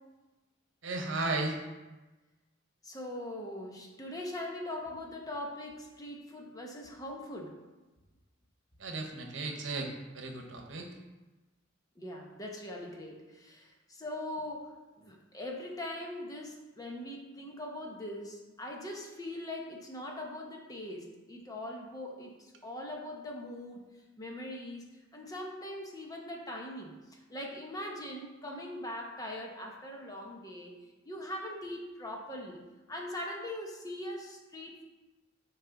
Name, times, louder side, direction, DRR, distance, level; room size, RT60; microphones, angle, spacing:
voice 1, 0.8-1.6 8.8-10.9, right 2 dB, 65° right, 3 dB, 1.0 m, -35 dB
voice 2, 2.8-7.5 12.0-23.8 24.2-24.9 25.1-30.8 31.0-32.6 32.9-34.8, left 1 dB, 20° left, 0 dB, 1.0 m, -41 dB
7.4 x 4.9 x 3.9 m, 1.1 s
head